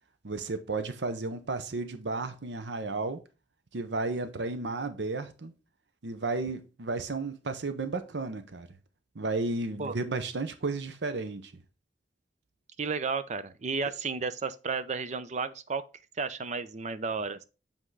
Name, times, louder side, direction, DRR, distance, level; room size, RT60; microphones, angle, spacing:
voice 1, 0.2-3.2 3.7-5.5 6.0-8.7 9.1-11.5, right 3 dB, 75° right, 0.8 m, -33 dB
voice 2, 12.8-15.8 16.2-17.4, right 4 dB, 45° right, 0.6 m, -32 dB
7.8 x 3.6 x 4.7 m
head